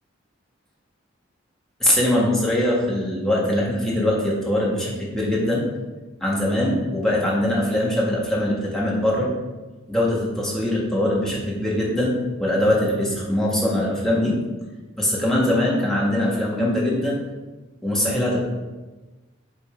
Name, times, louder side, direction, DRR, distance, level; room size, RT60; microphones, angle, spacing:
voice 1, 1.8-5.6 6.2-9.3 9.9-14.4 15.0-17.2 17.8-18.4, left 1 dB, ahead, -5 dB, 1.7 m, -22 dB
8.3 x 4.2 x 5.1 m, 1.2 s
head